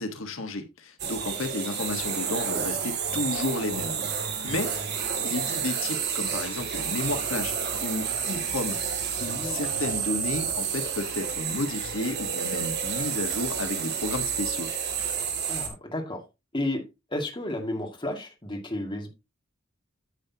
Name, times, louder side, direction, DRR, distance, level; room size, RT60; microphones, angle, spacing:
voice 1, 0.0-4.0 4.4-4.7 5.2-7.5 7.8-8.8 9.2-14.7, left 2 dB, 80° left, 1.4 m, -32 dB
sound 1, 1.0-15.7, right 7 dB, 55° right, 2.5 m, -30 dB
voice 2, 9.2-9.7 15.5-16.2 16.5-16.8 17.1-19.1, left 1 dB, 25° left, 2.1 m, -32 dB
9.9 x 8.3 x 2.8 m
head